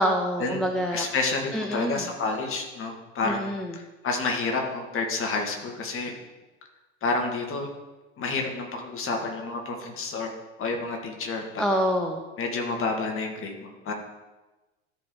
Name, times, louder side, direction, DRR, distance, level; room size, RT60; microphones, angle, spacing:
voice 1, 0.0-1.1 1.5-2.0 3.2-3.8 11.6-12.2, equal, ahead, 3 dB, 0.5 m, -26 dB
voice 2, 0.9-6.1 7.0-7.7 8.2-10.3 10.6-11.6 12.4-13.9, left 3 dB, 30° left, 2 dB, 1.9 m, -29 dB
13.5 x 4.8 x 3.8 m, 1.1 s
figure-of-eight pair, 80°, 41 cm